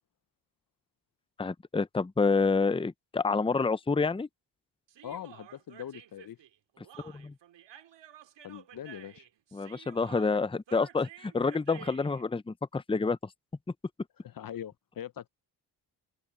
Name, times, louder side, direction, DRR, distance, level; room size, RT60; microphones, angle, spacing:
voice 1, 1.4-4.3 7.0-7.3 9.5-13.2, left 4 dB, 10° left, 0.8 m, -28 dB
Human voice, 4.9-12.2, right 10 dB, 60° right, 2.5 m, -52 dB
voice 2, 5.0-6.4 8.4-9.2 14.2-15.3, left 10 dB, 45° left, 0.9 m, -42 dB
open air
hypercardioid pair, 55°, 49 cm